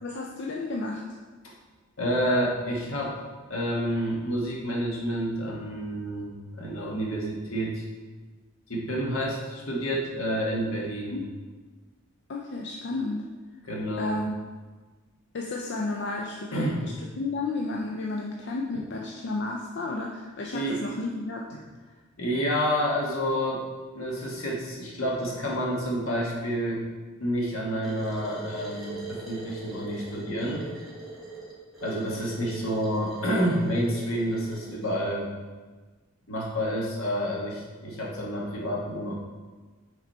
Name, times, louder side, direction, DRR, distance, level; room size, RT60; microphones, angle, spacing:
voice 1, 0.0-1.0 11.1-11.2 12.3-13.2 14.0-14.2 15.3-21.4 32.9-33.0, left 3 dB, 55° left, -1 dB, 0.5 m, -32 dB
voice 2, 2.0-3.1 3.5-7.8 8.7-11.2 13.6-14.2 16.5-16.8 18.7-18.8 20.5-20.8 22.2-23.6 23.9-26.8 27.2-30.7 31.8-35.3 36.3-39.1, equal, 75° left, -3 dB, 1.4 m, -29 dB
sound 1, 27.8-34.9, right 3 dB, ahead, 1.3 m, -42 dB
6.0 x 4.1 x 4.2 m, 1.3 s
head